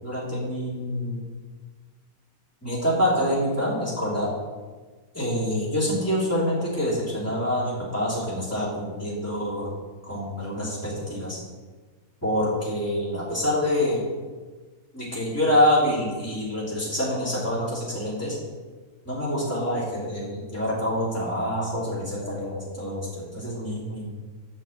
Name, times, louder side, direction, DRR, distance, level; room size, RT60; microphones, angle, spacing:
voice 1, 0.0-1.2 2.6-4.3 5.1-9.7 10.1-11.4 12.2-14.0 14.9-18.4 19.0-24.1, left 1 dB, 10° left, -8 dB, 3.0 m, -26 dB
6.8 x 5.9 x 7.3 m, 1.3 s
omnidirectional pair, 1.9 m